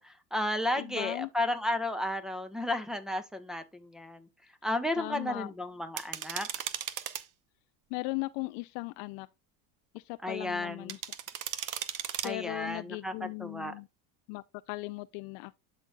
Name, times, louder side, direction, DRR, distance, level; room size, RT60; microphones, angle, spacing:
voice 1, 0.0-4.2 4.6-6.5 10.2-11.0 12.2-13.7, left 1 dB, ahead, 1.3 m, -33 dB
voice 2, 0.8-1.3 5.0-5.5 7.9-9.3 9.9-11.0 12.2-13.9 14.3-15.6, left 22 dB, 65° left, 0.5 m, -38 dB
sound 1, 6.0-7.2 10.9-12.3, right 10 dB, 40° right, 0.9 m, -36 dB
12.0 x 4.3 x 2.3 m
supercardioid pair, 90°, 48 cm